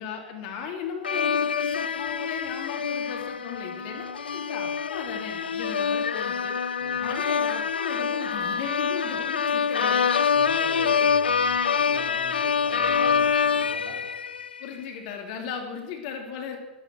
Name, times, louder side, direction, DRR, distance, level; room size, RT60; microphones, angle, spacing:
voice 1, 0.0-6.6 7.0-10.1 10.6-10.7 11.1-11.2 14.6-16.6, left 6 dB, 55° left, 3 dB, 3.2 m, -36 dB
sound 1, 1.0-14.7, left 6 dB, 80° left, 0.6 m, -26 dB
voice 2, 10.3-14.0, right 3 dB, 30° right, 0 dB, 4.5 m, -42 dB
12.5 x 12.5 x 7.7 m, 1.0 s
figure-of-eight pair, 90°, 5 cm